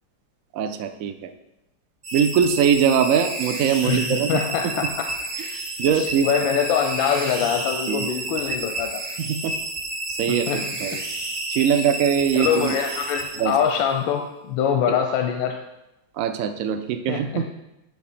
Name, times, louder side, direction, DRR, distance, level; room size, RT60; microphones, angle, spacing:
voice 1, 0.5-1.3 2.1-4.4 4.8-4.9 5.8-6.3 7.9-8.1 9.2-9.6 10.1-10.5 10.8-11.0 11.5-12.7 13.4-13.5 16.2-17.4, right 8 dB, 75° right, 8 dB, 0.7 m, -22 dB
sound 1, 2.0-13.9, right 2 dB, 40° right, 0.6 m, -30 dB
voice 2, 3.8-5.1 5.3-9.0 10.3-10.7 11.7-11.8 12.3-15.6 17.1-17.5, left 8 dB, 90° left, 4 dB, 1.4 m, -24 dB
8.3 x 5.4 x 4.3 m, 0.92 s
omnidirectional pair, 2.1 m